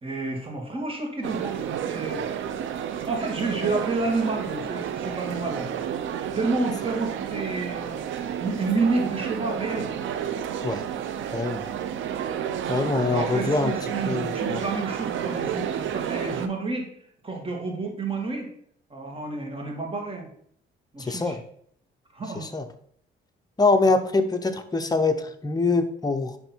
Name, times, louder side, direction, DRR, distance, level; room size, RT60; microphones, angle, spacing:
voice 1, 0.0-2.6 3.1-5.8 6.4-10.0 12.7-16.9 17.2-18.5 18.9-20.3 20.9-21.4 22.1-22.5, right 3 dB, 25° right, 1 dB, 2.1 m, -30 dB
sound 1, 1.2-16.5, right 9 dB, 75° right, 0.7 m, -31 dB
voice 2, 11.3-11.6 12.7-13.7 14.1-14.6 21.0-21.4 22.4-22.6 23.6-26.4, left 3 dB, 20° left, 6 dB, 0.8 m, -24 dB
10.0 x 3.4 x 4.5 m, 0.66 s
cardioid pair, 90°, 20 cm